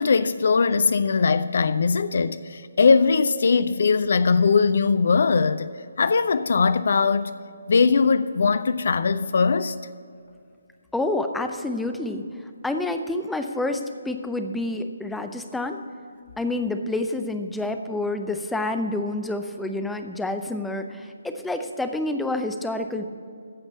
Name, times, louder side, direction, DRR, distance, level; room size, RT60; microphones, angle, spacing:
voice 1, 0.0-5.7 6.0-7.3 7.7-9.8, left 5 dB, 50° left, 0.4 m, -20 dB
voice 2, 10.9-12.2 12.6-15.8 16.4-23.0, left 2 dB, 5° left, 0.6 m, -28 dB
14.5 x 5.3 x 8.3 m
figure-of-eight pair, 145°, 0 cm